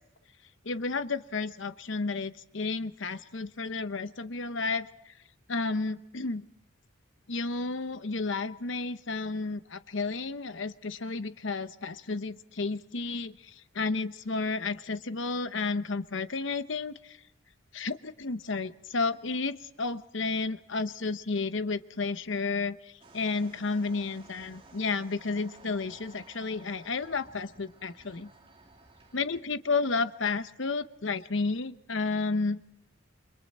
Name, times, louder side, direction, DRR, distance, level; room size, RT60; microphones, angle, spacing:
voice 1, 0.6-5.1 5.5-6.5 7.3-17.2 17.7-28.3 29.1-32.6, left 4 dB, 60° left, 12 dB, 0.9 m, -32 dB
sound 1, 23.0-29.4, right 3 dB, 25° right, 2.9 m, -55 dB
29.5 x 24.5 x 4.3 m, 0.81 s
head